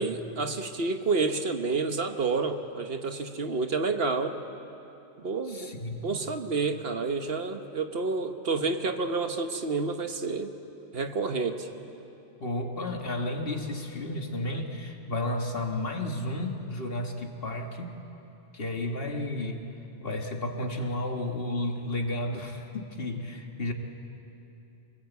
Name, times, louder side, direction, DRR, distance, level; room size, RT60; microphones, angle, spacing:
voice 1, 0.0-4.4 5.2-5.7 6.0-10.5 10.9-11.7, right 4 dB, 60° right, 6 dB, 1.4 m, -29 dB
voice 2, 5.5-6.2 12.4-18.0 18.5-19.6 20.0-23.7, left 1 dB, 60° left, 3 dB, 2.0 m, -32 dB
27.5 x 20.0 x 8.2 m, 2.9 s
omnidirectional pair, 1.1 m